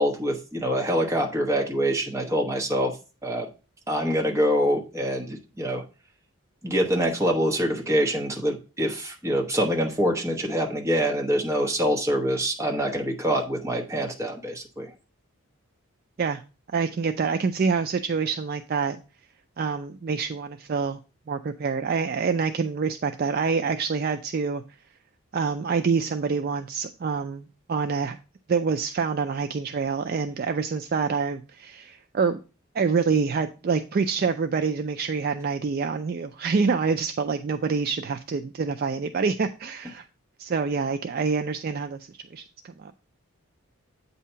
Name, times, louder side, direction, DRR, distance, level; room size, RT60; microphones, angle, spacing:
voice 1, 0.0-3.0 3.2-3.5 3.9-5.8 6.6-14.9, equal, 10° right, 1 dB, 0.9 m, -25 dB
voice 2, 16.7-19.0 19.6-21.0 21.3-24.6 25.3-28.2 28.5-32.4 32.7-40.0 40.4-42.0 42.3-42.9, right 5 dB, 45° right, 7 dB, 0.3 m, -26 dB
8.3 x 2.8 x 5.5 m, 0.32 s
head